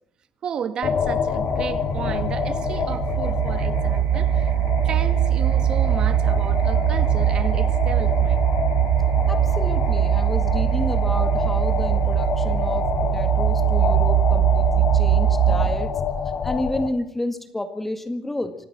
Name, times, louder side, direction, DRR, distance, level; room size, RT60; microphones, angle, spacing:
voice 1, 0.4-4.5 4.8-8.4, right 8 dB, 45° right, 1.7 m, -33 dB
sound 1, 0.8-16.9, left 6 dB, 45° left, 2.3 m, -27 dB
sound 2, 1.1-16.0, right 13 dB, 80° right, 0.9 m, -21 dB
voice 2, 9.3-15.9 16.4-18.5, left 1 dB, 10° left, 1.9 m, -30 dB
25.5 x 17.5 x 6.0 m
cardioid pair, 120°, 2 cm